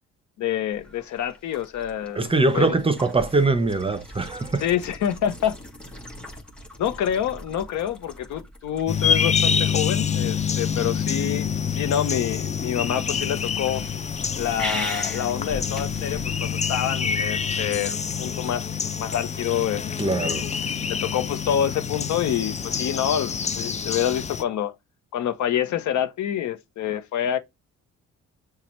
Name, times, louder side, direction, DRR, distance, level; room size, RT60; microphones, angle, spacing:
voice 1, 0.4-2.8 4.6-5.6 6.8-13.8 14.4-18.7 19.0-20.4 20.9-24.7 25.1-27.4, left 10 dB, 70° left, 0.8 m, -27 dB
sound 1, 0.7-17.5, equal, 5° left, 2.0 m, -40 dB
voice 2, 2.1-4.6 20.0-20.5, right 3 dB, 20° right, 0.8 m, -22 dB
sound 2, 8.9-24.4, left 7 dB, 25° left, 0.4 m, -27 dB
6.9 x 2.4 x 3.1 m
cardioid pair, 90°, 30 cm